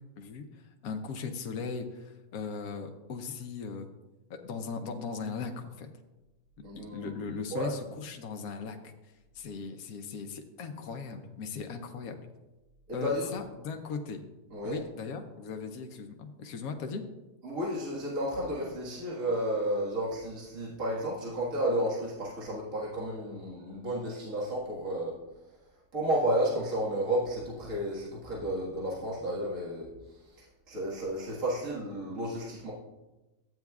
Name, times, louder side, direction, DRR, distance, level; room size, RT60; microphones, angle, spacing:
voice 1, 0.2-3.9 4.3-5.9 6.8-12.2 12.9-14.2 14.6-17.0, left 5 dB, 80° left, 5 dB, 1.2 m, -38 dB
voice 2, 6.6-7.7 12.9-13.3 14.5-14.8 17.4-25.1 25.9-29.9 30.7-32.7, right 1 dB, 65° right, -6 dB, 2.1 m, -32 dB
13.5 x 8.9 x 2.4 m, 1.1 s
omnidirectional pair, 1.5 m